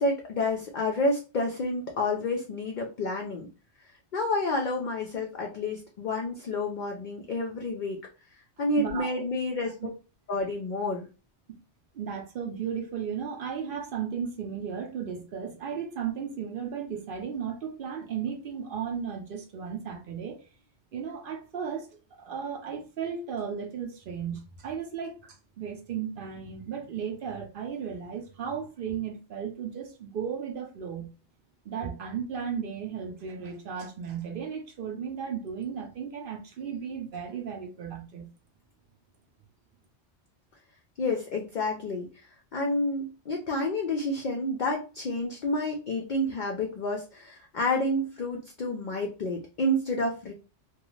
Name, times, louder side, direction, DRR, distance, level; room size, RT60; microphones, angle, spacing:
voice 1, 0.0-3.5 4.1-8.0 8.6-9.7 10.3-11.0 41.0-42.2 42.5-50.3, left 2 dB, 60° left, 0.5 m, -29 dB
voice 2, 8.8-9.2 11.9-20.4 20.9-21.9 22.2-31.1 31.7-38.3, right 7 dB, 60° right, 0.7 m, -35 dB
2.4 x 2.3 x 3.0 m
omnidirectional pair, 1.2 m